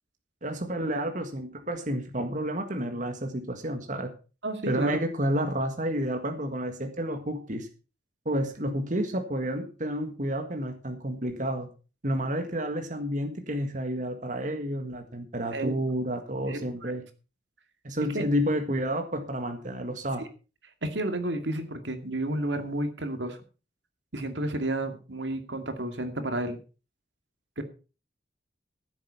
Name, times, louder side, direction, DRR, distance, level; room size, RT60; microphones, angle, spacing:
voice 1, 0.4-4.1 4.6-7.7 8.2-11.7 12.0-17.0 17.8-20.2, equal, 45° right, 5 dB, 1.7 m, -30 dB
voice 2, 4.4-5.0 15.5-15.7 16.5-17.0 18.1-18.2 20.8-23.4 24.1-26.6 27.6-27.7, right 1 dB, 80° right, 7 dB, 2.3 m, -31 dB
15.0 x 8.1 x 5.7 m, 0.35 s
head